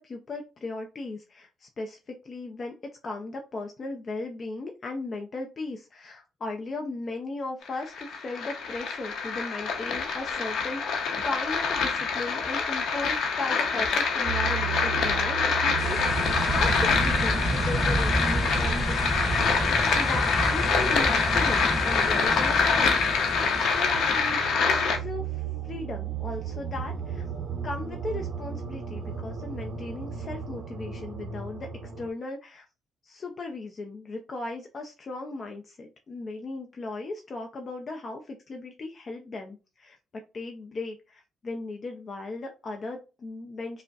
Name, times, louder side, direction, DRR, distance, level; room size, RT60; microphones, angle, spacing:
voice 1, 0.0-2.7 3.0-19.3 20.0-27.2 27.6-31.7 32.0-32.7 33.0-40.0 40.3-43.8, left 3 dB, 45° left, 3 dB, 0.5 m, -37 dB
sound 1, 7.6-25.0, left 5 dB, 70° left, 0.8 m, -26 dB
sound 2, 14.3-32.1, right 7 dB, 55° right, 0.6 m, -36 dB
sound 3, 15.8-24.4, equal, ahead, 0.6 m, -30 dB
5.1 x 2.1 x 2.4 m, 0.31 s
cardioid pair, 90°, 0 cm